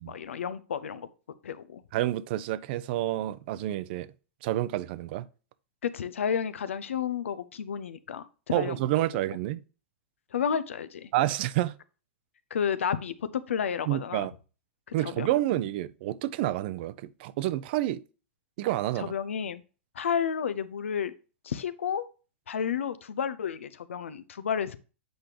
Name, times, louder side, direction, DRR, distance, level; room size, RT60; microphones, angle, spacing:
voice 1, 0.1-1.1 1.4-1.8 5.8-8.8 9.1-9.2 10.3-11.1 12.5-14.3 14.9-15.4 19.0-19.6 19.9-21.1 21.4-22.1 22.5-24.8, left 7 dB, 80° left, 0.7 m, -31 dB
voice 2, 1.9-4.1 4.4-5.2 8.5-9.6 11.1-11.7 13.9-14.3 14.9-18.0 18.6-19.1, right 14 dB, 55° right, 0.6 m, -29 dB
8.0 x 5.1 x 2.8 m
hypercardioid pair, 115°, 7 cm